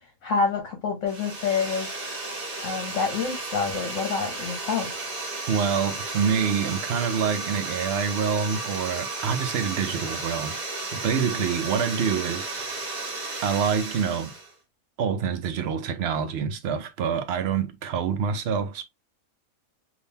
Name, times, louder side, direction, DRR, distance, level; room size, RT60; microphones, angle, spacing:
voice 1, 0.2-1.9 2.6-4.9 11.4-11.5, left 5 dB, 60° left, 1.1 m, -27 dB
sound 1, 1.1-14.5, right 3 dB, 35° right, 1.0 m, -33 dB
voice 2, 5.5-10.5 10.8-12.8 13.4-14.3 15.0-18.8, right 7 dB, 60° right, 0.7 m, -26 dB
3.6 x 2.8 x 2.7 m
omnidirectional pair, 1.5 m